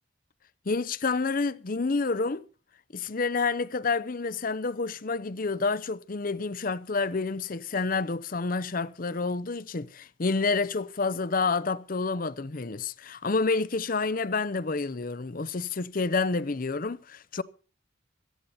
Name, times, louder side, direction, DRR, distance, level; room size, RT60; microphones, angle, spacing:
voice 1, 0.7-2.4 2.9-17.4, left 4 dB, 45° left, 0.6 m, -29 dB
18.0 x 13.5 x 4.2 m
head